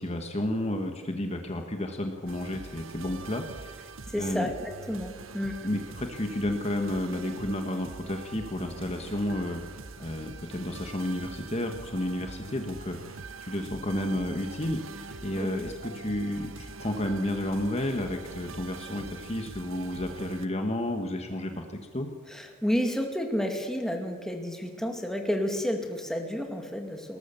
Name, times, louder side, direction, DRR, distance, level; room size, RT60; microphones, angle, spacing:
voice 1, 0.0-3.9 4.2-4.5 5.6-9.6 10.0-22.1, left 1 dB, 30° left, 5 dB, 1.6 m, -31 dB
sound 1, 2.3-20.5, right 3 dB, 80° right, 1.1 m, -44 dB
voice 2, 4.1-4.5 4.9-5.6 15.4-15.5 22.3-27.2, equal, 5° left, 3 dB, 2.2 m, -30 dB
20.5 x 19.0 x 7.0 m, 1.4 s
head